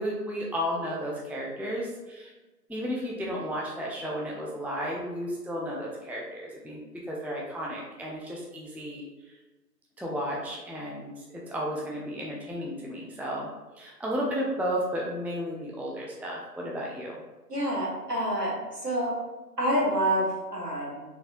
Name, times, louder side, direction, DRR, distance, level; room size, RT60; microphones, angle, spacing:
voice 1, 0.0-2.3 2.7-6.8 7.1-9.0 10.0-13.5 13.8-17.2, equal, 5° right, -3 dB, 0.4 m, -33 dB
voice 2, 17.5-18.5 18.8-19.1 19.6-21.0, equal, 70° right, -4 dB, 1.5 m, -27 dB
4.0 x 2.6 x 2.4 m, 1.2 s
figure-of-eight pair, 175°, 49 cm